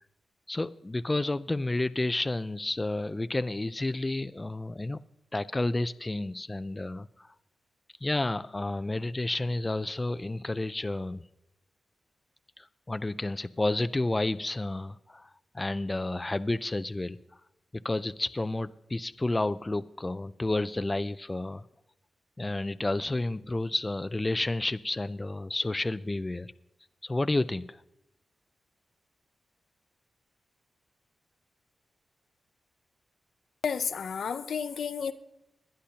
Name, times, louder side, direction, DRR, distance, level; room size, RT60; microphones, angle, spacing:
voice 1, 0.5-5.0 5.3-7.3 8.0-11.2 12.6-15.3 15.5-17.2 17.8-21.6 22.4-26.5 27.0-27.8, left 2 dB, 20° left, 12 dB, 0.4 m, -30 dB
voice 2, 33.6-35.1, left 6 dB, 75° left, 10 dB, 0.6 m, -31 dB
21.5 x 10.0 x 2.8 m, 0.85 s
cardioid pair, 75°, 0 cm